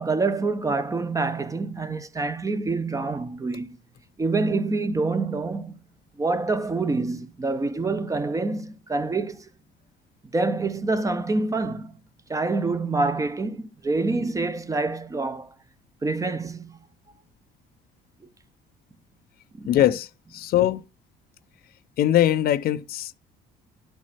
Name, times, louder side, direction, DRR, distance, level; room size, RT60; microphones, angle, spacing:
voice 1, 0.0-3.8 4.2-5.8 6.2-9.4 10.3-12.0 12.3-15.5 16.0-16.8 19.6-19.8, right 3 dB, 20° right, 0.8 m, -26 dB
voice 2, 19.7-20.8 22.0-23.1, left 12 dB, 65° left, 0.6 m, -22 dB
12.0 x 4.6 x 4.3 m
cardioid pair, 110°, 17 cm